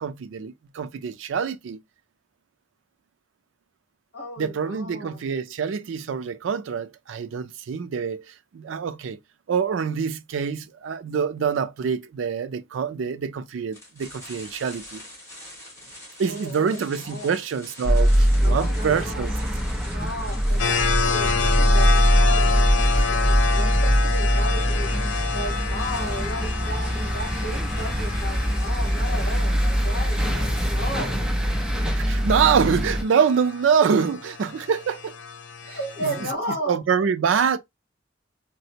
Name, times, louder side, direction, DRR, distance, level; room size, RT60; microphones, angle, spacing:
voice 1, 0.0-1.8 4.4-9.2 9.5-15.0 16.2-19.3 32.0-35.2 35.7-36.3 36.7-37.6, right 6 dB, 80° right, 0.4 m, -25 dB
voice 2, 4.1-5.2 16.3-17.3 18.3-19.3 19.8-24.9 25.3-31.2 35.7-36.8, equal, 55° left, 1.0 m, -35 dB
sound 1, 13.7-31.4, left 1 dB, 15° left, 2.1 m, -45 dB
sound 2, 17.8-33.0, equal, 5° right, 0.5 m, -22 dB
sound 3, 20.6-31.5 32.0-32.1 32.7-36.3, left 6 dB, 85° left, 0.6 m, -29 dB
4.1 x 2.0 x 2.6 m
head